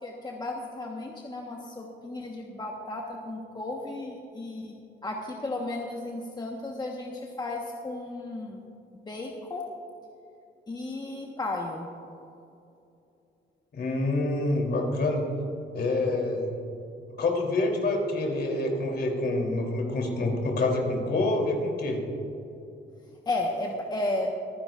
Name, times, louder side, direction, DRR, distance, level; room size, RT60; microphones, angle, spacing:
voice 1, 0.0-8.6 9.0-9.7 10.7-11.9 23.3-24.3, left 2 dB, 20° left, 0 dB, 1.3 m, -34 dB
voice 2, 13.7-15.2 15.7-16.5 17.2-22.0, left 2 dB, 55° left, 0 dB, 3.3 m, -27 dB
25.0 x 9.8 x 2.5 m, 2.8 s
cardioid pair, 90°, 20 cm